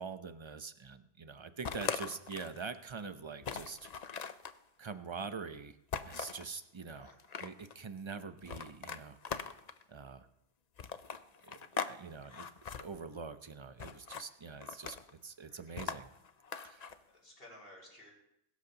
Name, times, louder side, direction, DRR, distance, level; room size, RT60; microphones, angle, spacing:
voice 1, 0.0-3.9 4.8-5.8 6.0-7.1 7.4-9.6 9.9-10.3 11.4-12.5 12.8-16.1 16.6-16.9, right 5 dB, 30° right, 10 dB, 0.7 m, -44 dB
sound 1, 1.6-2.6 3.0-3.1 3.4-4.6 5.9-6.5 7.1-7.7 8.5-9.8 10.8-12.0 12.2-12.8 13.8-14.3 14.6-15.1 15.8-17.0, left 6 dB, 45° left, 0.7 m, -40 dB
voice 2, 6.9-7.5 15.5-15.8 17.1-18.1, left 1 dB, 60° left, -3 dB, 5.5 m, -56 dB
21.5 x 12.5 x 2.9 m, 0.83 s
omnidirectional pair, 1.1 m